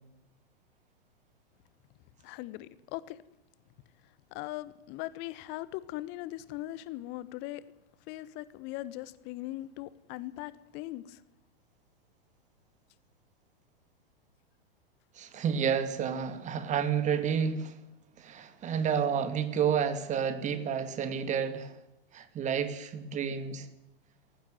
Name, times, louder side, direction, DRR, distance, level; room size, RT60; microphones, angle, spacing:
voice 1, 2.2-3.2 4.3-7.6 8.1-11.2, left 16 dB, 35° left, 1.3 m, -40 dB
voice 2, 15.2-17.7 18.2-21.7 22.1-23.7, right 7 dB, 25° right, 2.4 m, -30 dB
18.5 x 15.0 x 9.4 m
figure-of-eight pair, 105°, 30 cm